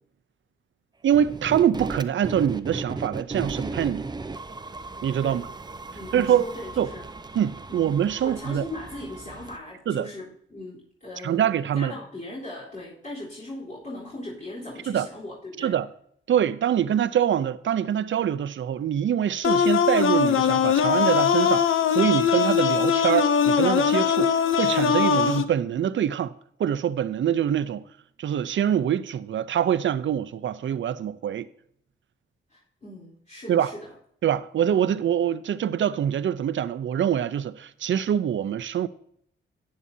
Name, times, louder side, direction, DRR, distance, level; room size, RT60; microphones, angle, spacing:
voice 1, 1.0-4.1 5.0-5.5 6.1-6.4 6.8-6.9 7.3-8.7 9.9-10.1 11.2-11.9 14.9-15.1 15.6-15.9 16.3-26.3 26.6-27.8 28.2-31.5 33.5-33.7 34.2-38.9, right 9 dB, 70° right, 0.6 m, -24 dB
sound 1, 1.1-9.6, right 3 dB, 20° right, 0.6 m, -36 dB
voice 2, 5.9-7.1 7.7-7.9 8.2-11.5 11.7-15.7 32.5-33.9, left 1 dB, 40° left, 3.9 m, -39 dB
sound 2, 19.4-25.4, left 7 dB, 80° left, 0.7 m, -21 dB
11.0 x 9.8 x 2.7 m
cardioid pair, 90°, 20 cm